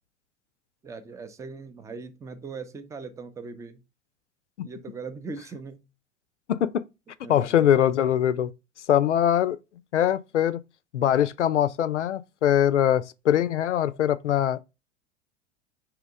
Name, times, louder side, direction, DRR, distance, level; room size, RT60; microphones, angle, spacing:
voice 1, 0.8-3.8 4.6-5.9 7.2-7.7, right 4 dB, 10° right, 0.5 m, -40 dB
voice 2, 6.5-6.8 7.3-8.5 8.9-9.6 9.9-10.6 10.9-14.6, left 10 dB, 75° left, 0.5 m, -22 dB
5.1 x 3.0 x 3.5 m
figure-of-eight pair, 90°, 35 cm